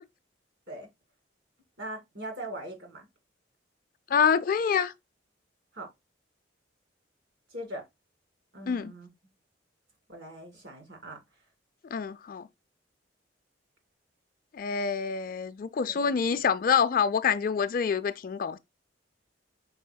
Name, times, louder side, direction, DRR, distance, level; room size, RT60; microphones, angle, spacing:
voice 1, 1.8-3.1 5.7-5.9 7.5-7.8 8.5-9.1 10.1-11.2 15.9-16.1, right 1 dB, 65° right, 2.1 m, -40 dB
voice 2, 4.1-4.9 8.7-8.9 11.9-12.5 14.5-18.6, left 6 dB, 50° left, 0.3 m, -26 dB
5.5 x 4.3 x 2.2 m
head